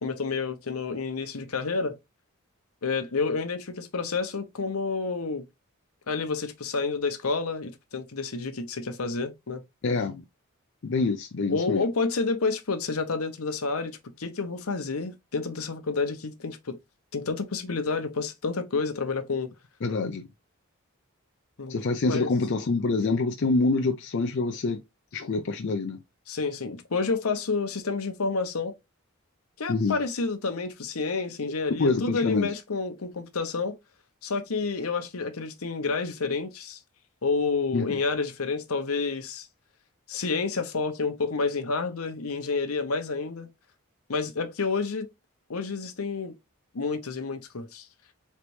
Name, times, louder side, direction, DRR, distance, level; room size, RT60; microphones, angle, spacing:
voice 1, 0.0-2.0 2.8-5.4 6.1-9.6 11.5-16.8 17.1-19.5 21.6-21.8 22.1-22.3 26.3-28.7 29.6-33.8 34.2-36.8 37.2-39.5 40.1-43.5 44.1-45.1 45.5-46.3 46.7-47.9, left 4 dB, 80° left, 0.9 m, -29 dB
voice 2, 9.8-10.2 10.8-11.9 19.8-20.3 21.7-24.8 25.1-26.0 29.7-30.0 31.8-32.5 37.7-38.0, left 3 dB, 55° left, 0.4 m, -26 dB
4.0 x 3.3 x 3.1 m
head